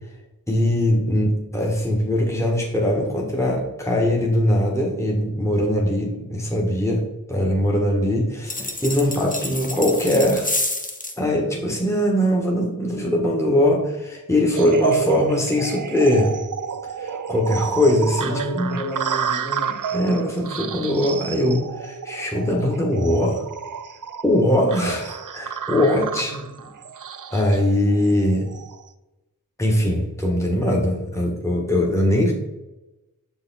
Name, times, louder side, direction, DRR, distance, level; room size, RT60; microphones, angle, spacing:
voice 1, 0.5-10.5 11.2-16.3 16.9-18.7 19.9-23.5 24.2-26.4 27.3-28.5 29.6-32.3, left 1 dB, 10° left, -2 dB, 1.2 m, -21 dB
sound 1, 8.5-11.2, left 2 dB, 25° left, 0.7 m, -28 dB
sound 2, 14.6-28.8, right 7 dB, 60° right, 0.5 m, -30 dB
voice 2, 18.2-19.8 26.2-26.8, right 1 dB, 50° left, -3 dB, 1.9 m, -32 dB
6.9 x 4.1 x 4.0 m, 1.0 s
wide cardioid pair, 55°, 35 cm